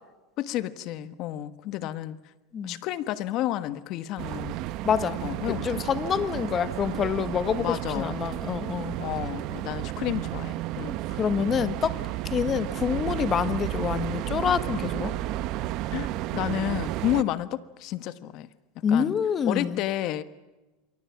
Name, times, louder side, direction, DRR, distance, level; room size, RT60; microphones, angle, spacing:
voice 1, 0.4-2.2 2.6-4.6 5.2-5.8 7.6-8.2 9.0-11.0 15.9-18.5 18.9-19.1 19.5-20.2, left 13 dB, 50° left, 13 dB, 1.4 m, -31 dB
sound 1, 4.2-17.2, right 15 dB, 50° right, 1.0 m, -32 dB
voice 2, 4.8-5.2 5.5-9.0 11.1-12.0 12.3-15.1 18.8-19.8, left 7 dB, 25° left, 13 dB, 1.4 m, -27 dB
28.0 x 23.5 x 6.0 m, 1.1 s
supercardioid pair, 140°, 0 cm